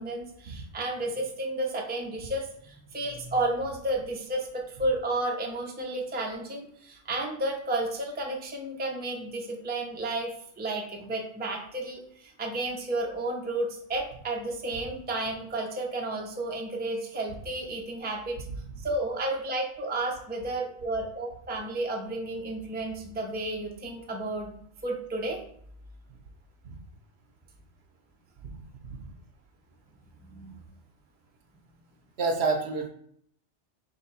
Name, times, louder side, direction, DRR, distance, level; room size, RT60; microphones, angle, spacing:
voice 1, 0.0-18.4 18.8-24.6 24.8-25.4 30.3-30.5, right 2 dB, 10° right, 0 dB, 0.5 m, -32 dB
voice 2, 32.2-32.9, right 4 dB, 65° right, 4 dB, 0.9 m, -29 dB
3.6 x 3.0 x 4.2 m, 0.65 s
omnidirectional pair, 1.2 m